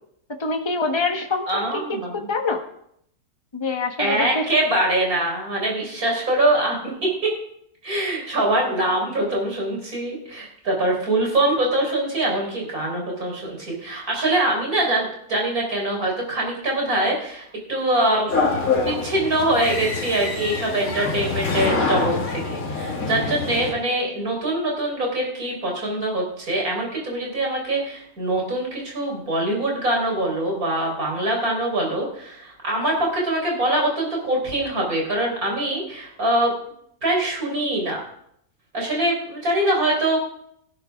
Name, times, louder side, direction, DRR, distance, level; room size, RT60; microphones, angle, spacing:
voice 1, 0.3-2.0 2.3-2.6 3.5-4.5, left 3 dB, 20° left, 4 dB, 1.2 m, -25 dB
voice 2, 1.5-2.3 4.0-7.3 7.8-18.4 18.6-36.5 37.0-38.0 38.7-40.2, right 1 dB, 85° right, -1 dB, 4.8 m, -23 dB
sound 1, 18.3-23.7, left 4 dB, 75° left, 2.4 m, -25 dB
17.0 x 11.0 x 3.6 m, 0.71 s
omnidirectional pair, 1.5 m